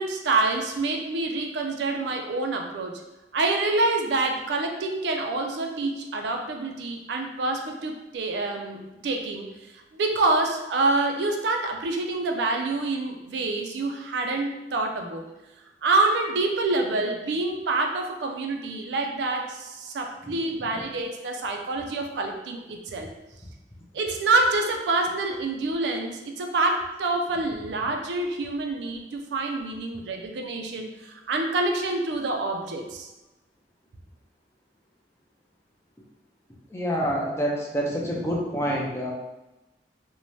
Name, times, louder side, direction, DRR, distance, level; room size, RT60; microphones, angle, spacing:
voice 1, 0.0-2.9 3.3-9.5 9.9-15.2 15.8-23.1 23.9-33.1, right 2 dB, 75° right, 3 dB, 0.4 m, -27 dB
voice 2, 36.7-39.1, equal, 15° left, -2 dB, 0.4 m, -27 dB
2.6 x 2.1 x 3.0 m, 1.0 s
head